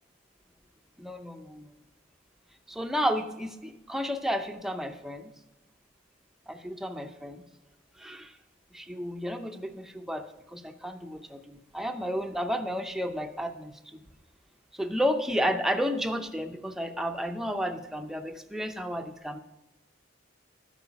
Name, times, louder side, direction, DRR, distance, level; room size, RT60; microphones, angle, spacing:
voice 1, 1.0-1.7 2.7-5.3 6.5-7.4 8.0-8.3 8.7-14.0 14.7-19.4, equal, ahead, 6 dB, 0.6 m, -32 dB
12.5 x 4.9 x 5.8 m, 0.99 s
head